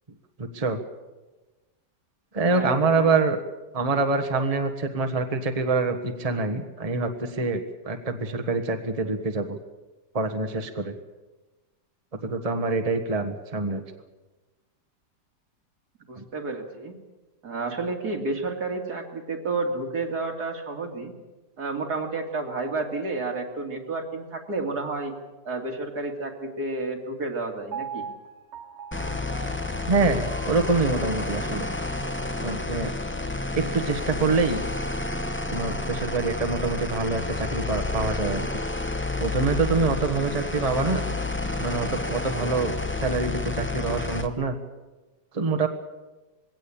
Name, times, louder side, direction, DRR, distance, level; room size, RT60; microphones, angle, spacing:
voice 1, 0.4-0.8 2.3-3.4 3.7-9.6 10.1-11.0 12.2-13.8 16.2-16.3 29.9-31.7 32.4-32.9 33.5-34.6 35.5-38.5 39.2-41.0 41.6-42.7 43.0-44.6 45.3-45.7, right 3 dB, 25° right, 6 dB, 1.4 m, -25 dB
voice 2, 2.5-3.1 16.1-17.0 17.4-21.1 21.6-25.1 25.4-28.0, right 3 dB, 70° right, 2 dB, 3.1 m, -31 dB
Piano, 27.7-31.8 32.3-32.4, right 6 dB, 50° right, 1.1 m, -41 dB
Waves Gone Bad, 28.9-44.3, left 2 dB, 10° left, 0.9 m, -30 dB
21.5 x 17.0 x 8.7 m, 1.1 s
omnidirectional pair, 1.8 m